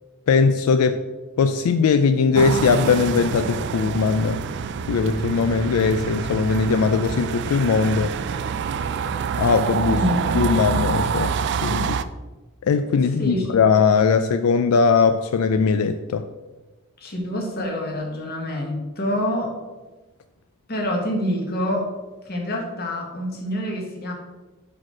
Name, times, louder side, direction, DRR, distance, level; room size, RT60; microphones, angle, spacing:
voice 1, 0.3-1.0 1.4-4.5 4.9-8.1 9.4-10.0 10.3-11.3 11.6-12.0 12.6-16.3, left 5 dB, 85° left, 9 dB, 0.4 m, -20 dB
sound 1, 2.3-12.0, right 6 dB, 55° right, 0.3 m, -26 dB
voice 2, 9.9-10.2 13.2-13.5 17.0-19.6 20.7-21.9 22.2-24.1, left 1 dB, 45° left, 1 dB, 1.4 m, -26 dB
6.0 x 5.0 x 4.6 m, 1.2 s
head